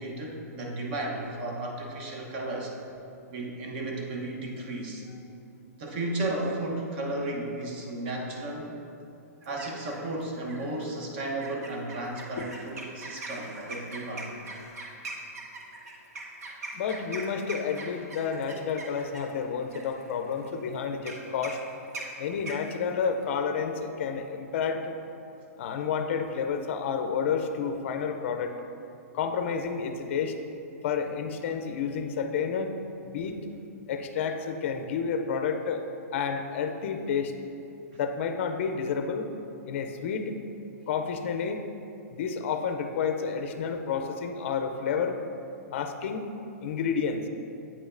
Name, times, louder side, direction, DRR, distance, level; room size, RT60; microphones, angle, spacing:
voice 1, 0.0-2.7 3.3-5.0 5.8-8.8 9.5-14.3, right 2 dB, 40° right, 0 dB, 0.9 m, -34 dB
sound 1, 9.4-10.1 10.5-10.8 11.4-23.3, right 2 dB, 75° right, 1.0 m, -41 dB
voice 2, 16.7-21.6 22.2-24.9 25.6-28.5 29.1-30.3 30.8-32.7 33.0-33.4 33.9-35.8 36.1-37.3 37.9-39.3 39.7-40.4 40.9-41.6 42.1-45.2 45.7-46.2 46.6-47.2, left 6 dB, 50° left, 6 dB, 0.4 m, -30 dB
8.5 x 5.1 x 2.5 m, 2.7 s
hypercardioid pair, 165°, 9 cm